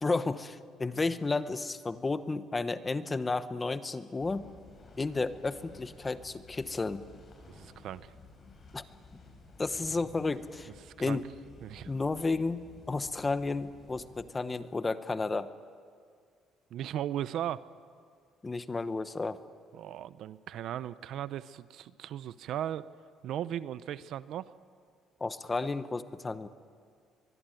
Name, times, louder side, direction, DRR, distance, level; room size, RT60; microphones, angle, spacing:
voice 1, 0.0-4.5 5.0-7.1 8.7-8.8 9.6-10.7 11.0-11.3 11.9-15.5 18.4-19.4 25.2-26.5, left 3 dB, 20° left, 12 dB, 1.0 m, -32 dB
sound 1, 4.2-14.3, left 3 dB, 35° left, 5.6 m, -54 dB
voice 2, 7.5-8.1 10.8-11.2 11.6-11.9 16.7-17.7 19.7-22.8 23.2-24.5, right 11 dB, 70° right, 15 dB, 0.7 m, -37 dB
23.5 x 22.0 x 9.1 m, 2.1 s
cardioid pair, 120°, 0 cm